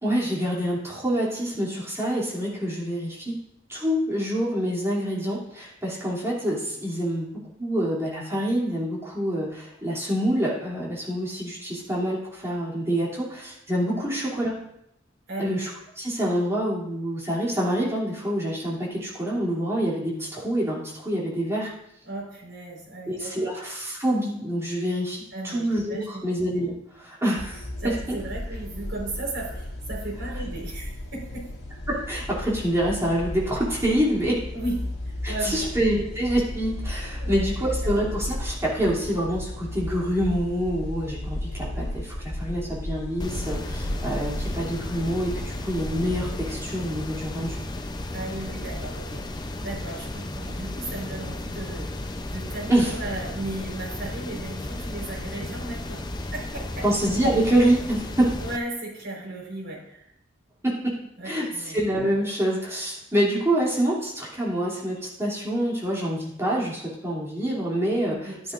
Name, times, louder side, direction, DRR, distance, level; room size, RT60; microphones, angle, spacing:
voice 1, 0.0-3.3 3.7-7.3 7.6-14.5 15.4-15.7 16.0-21.7 23.1-25.2 25.4-27.7 31.9-34.4 35.2-47.6 52.7-52.9 56.8-58.4 60.6-60.7 61.2-68.3, right 1 dB, 15° right, -6 dB, 2.8 m, -26 dB
voice 2, 22.1-23.4 25.3-26.3 27.8-31.5 34.5-34.8 35.0-35.7 37.2-37.5 37.8-37.9 48.1-51.9 52.3-56.0 56.3-56.8 58.4-60.1 61.2-61.8 68.1-68.4, right 2 dB, 70° right, -3 dB, 4.4 m, -35 dB
sound 1, 27.4-46.4, left 1 dB, 60° left, 2.2 m, -34 dB
sound 2, 43.2-58.6, left 1 dB, 20° left, 0.6 m, -34 dB
12.5 x 10.0 x 2.5 m, 0.78 s
head